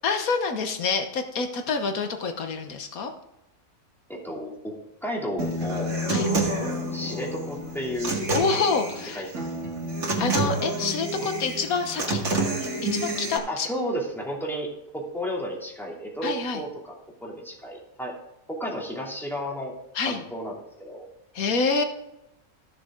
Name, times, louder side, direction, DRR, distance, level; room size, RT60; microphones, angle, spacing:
voice 1, 0.0-3.1 6.1-6.3 8.3-9.3 10.2-12.2 12.6-13.7 16.2-16.6 19.9-20.2 21.3-21.8, left 4 dB, 80° left, 6 dB, 1.5 m, -27 dB
voice 2, 4.1-4.7 5.0-5.9 6.4-8.7 9.1-9.4 11.2-11.3 13.5-14.7 14.9-18.2 18.5-19.8 20.0-21.0, equal, ahead, -3 dB, 2.8 m, -33 dB
Human voice / Acoustic guitar, 5.4-13.4, right 1 dB, 60° right, 2.3 m, -28 dB
15.0 x 6.8 x 3.7 m, 0.89 s
omnidirectional pair, 1.5 m